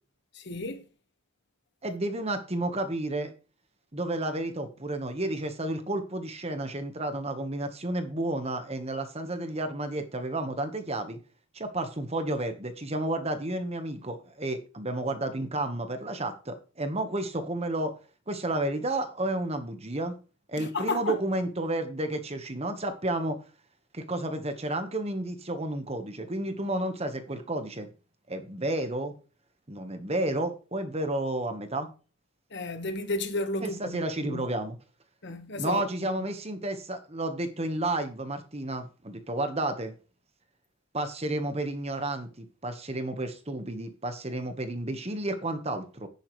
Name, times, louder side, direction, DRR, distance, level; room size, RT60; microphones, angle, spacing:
voice 1, 0.3-0.8 20.6-21.2 32.5-34.5 35.2-35.8 36.1-36.3, left 2 dB, 55° left, 1.4 m, -33 dB
voice 2, 1.8-3.3 3.9-11.2 11.5-17.9 18.3-20.1 20.5-23.4 23.9-27.9 28.3-29.1 29.7-31.9 33.6-34.8 35.6-39.9 40.9-46.1, right 1 dB, 30° right, 1.3 m, -31 dB
10.5 x 10.0 x 3.2 m
head